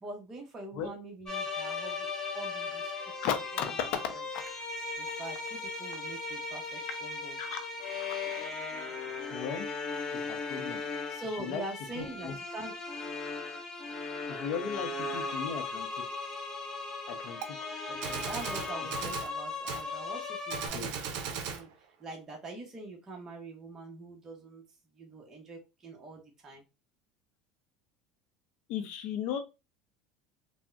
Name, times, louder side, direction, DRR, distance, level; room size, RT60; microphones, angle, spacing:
voice 1, 0.0-2.1 2.3-2.9 3.5-4.2 5.0-7.4 11.1-12.7 17.9-21.7 22.0-24.6 25.0-26.6, right 2 dB, 25° right, 0 dB, 0.8 m, -44 dB
sound 1, 1.3-20.7, left 3 dB, 25° left, 0.8 m, -37 dB
voice 2, 3.2-4.4 7.4-7.7 8.0-8.1 9.3-9.7 10.2-10.8 11.4-11.6 11.9-12.4 14.3-15.9 17.1-17.4 19.0-19.2 20.7-20.9 28.7-29.4, left 8 dB, 60° left, 7 dB, 0.5 m, -36 dB
Gunshot gunfire, 17.4-17.5 18.0-19.3 19.7-19.9 20.5-21.6, right 7 dB, 65° right, 0.6 m, -37 dB
3.4 x 2.1 x 2.4 m, 0.26 s
supercardioid pair, 120°, 2 cm